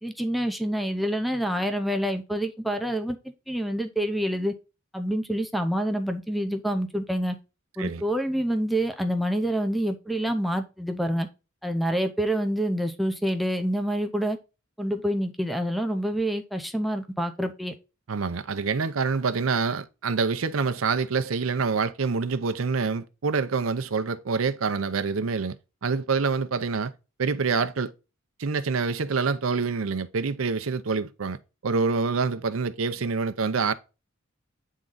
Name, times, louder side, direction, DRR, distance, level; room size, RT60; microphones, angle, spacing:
voice 1, 0.0-3.2 3.5-4.5 4.9-7.4 7.8-11.3 11.6-14.4 14.8-17.7, equal, ahead, 0.6 m, -27 dB
voice 2, 18.1-25.6 25.8-26.9 27.2-27.9 28.4-33.7, right 4 dB, 80° right, 0.6 m, -26 dB
9.0 x 3.7 x 3.9 m
head